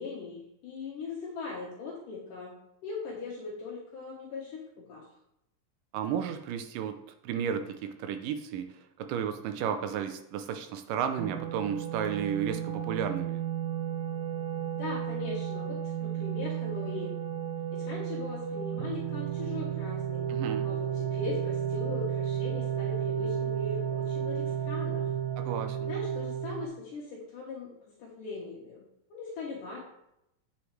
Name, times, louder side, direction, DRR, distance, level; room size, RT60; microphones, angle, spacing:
voice 1, 0.0-2.5 2.8-5.1 14.8-17.2 17.7-20.2 20.6-25.1 25.8-27.7 28.0-29.8, left 4 dB, 70° left, -5 dB, 2.7 m, -40 dB
voice 2, 5.9-13.4 20.3-20.7 25.4-25.9, right 8 dB, 80° right, 7 dB, 2.1 m, -33 dB
sound 1, 11.2-26.6, right 9 dB, 55° right, 1.5 m, -33 dB
8.4 x 6.3 x 3.2 m, 0.81 s
omnidirectional pair, 4.1 m